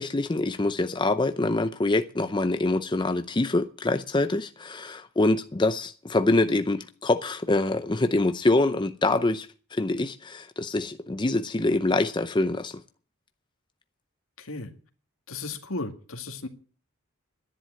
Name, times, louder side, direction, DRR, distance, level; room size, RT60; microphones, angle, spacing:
voice 1, 0.0-12.8, left 2 dB, 20° left, 0.6 m, -25 dB
voice 2, 14.4-14.7 15.3-16.5, left 3 dB, 75° left, 1.9 m, -35 dB
11.0 x 10.5 x 9.0 m
head